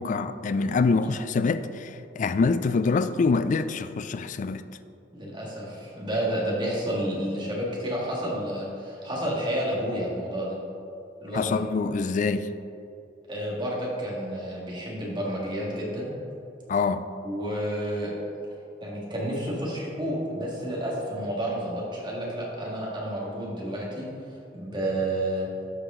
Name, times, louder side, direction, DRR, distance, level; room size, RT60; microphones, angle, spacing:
voice 1, 0.0-4.6 11.3-12.5 16.7-17.0, left 4 dB, 45° left, 11 dB, 0.3 m, -25 dB
voice 2, 5.1-10.6 11.2-11.6 13.3-16.1 17.2-18.1 18.8-24.1 24.5-25.5, right 1 dB, 25° right, -4 dB, 1.7 m, -30 dB
12.5 x 4.8 x 3.7 m, 2.7 s
head